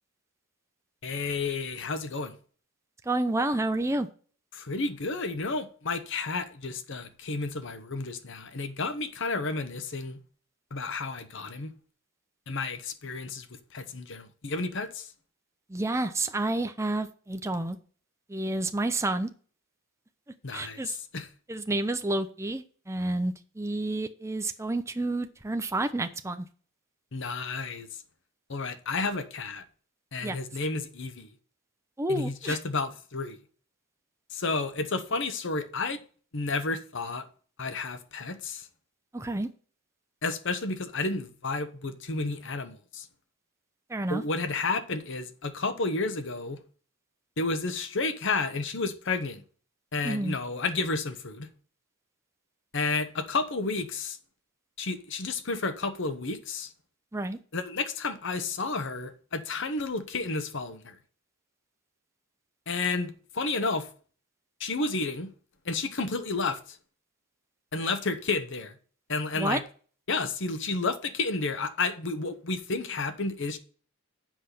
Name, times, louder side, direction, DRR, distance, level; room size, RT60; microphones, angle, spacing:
voice 1, 1.0-2.3 4.5-10.2 10.7-11.7 12.5-13.5 13.7-15.1 20.4-21.3 27.1-27.9 28.5-29.6 30.1-31.3 32.1-33.4 34.3-36.0 36.3-37.3 37.6-38.7 40.2-43.1 44.1-46.6 47.4-49.4 49.9-51.5 52.7-54.2 54.8-56.7 57.5-60.9 62.7-63.9 64.6-65.3 65.6-66.8 67.7-68.8 69.1-69.6 70.1-73.6, left 3 dB, 65° left, 1.1 m, -31 dB
voice 2, 3.1-4.1 15.7-17.8 18.3-19.3 20.5-21.0 21.5-26.5 30.2-30.4 32.0-32.6 39.1-39.5 43.9-44.2 50.0-50.4 57.1-57.4 69.4-69.6, right 2 dB, 15° right, 0.6 m, -29 dB
7.6 x 5.9 x 6.8 m
head